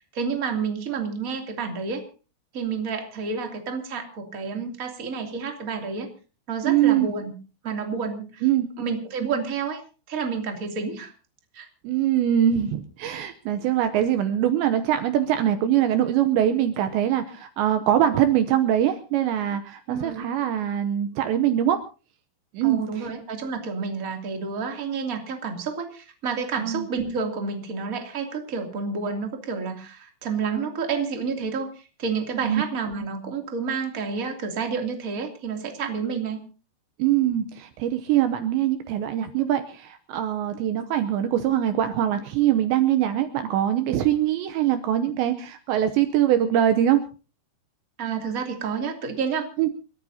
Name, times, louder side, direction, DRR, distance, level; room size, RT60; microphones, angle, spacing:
voice 1, 0.0-2.0 2.5-6.1 6.5-7.3 7.6-8.4 8.8-9.8 10.1-11.1 11.5-11.7 19.9-20.3 22.6-36.4 48.0-49.5, right 5 dB, 25° right, 3 dB, 2.1 m, -29 dB
voice 2, 6.6-7.1 8.4-8.7 11.8-21.8 22.5-23.1 26.6-26.9 32.4-32.6 37.0-47.0 49.6-49.7, right 11 dB, 75° right, 9 dB, 2.8 m, -23 dB
29.0 x 13.5 x 2.8 m, 0.35 s
omnidirectional pair, 5.6 m